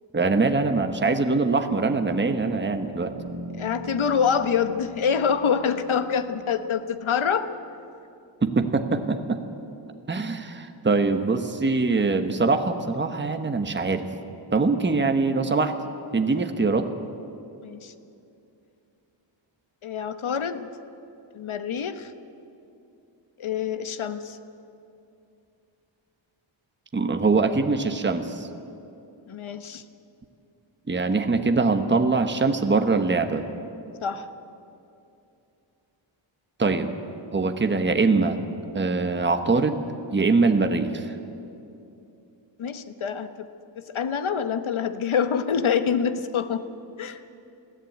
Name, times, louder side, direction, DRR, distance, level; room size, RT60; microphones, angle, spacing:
voice 1, 0.1-3.1 8.4-9.4 10.1-14.1 14.5-15.7 16.1-16.9 26.9-28.5 30.9-33.4 36.6-36.9 37.3-38.4 38.7-39.8 40.1-41.1, right 3 dB, 25° right, 6 dB, 1.1 m, -23 dB
sound 1, 3.2-7.1, right 2 dB, 85° right, 1.7 m, -42 dB
voice 2, 3.5-7.5 17.6-17.9 19.8-20.7 21.3-22.1 23.4-24.4 29.3-29.8 34.0-34.3 42.6-43.5 43.7-46.6 47.0-47.2, left 7 dB, 75° left, 10 dB, 1.1 m, -26 dB
21.0 x 14.5 x 9.4 m, 2.7 s
wide cardioid pair, 165°, 48 cm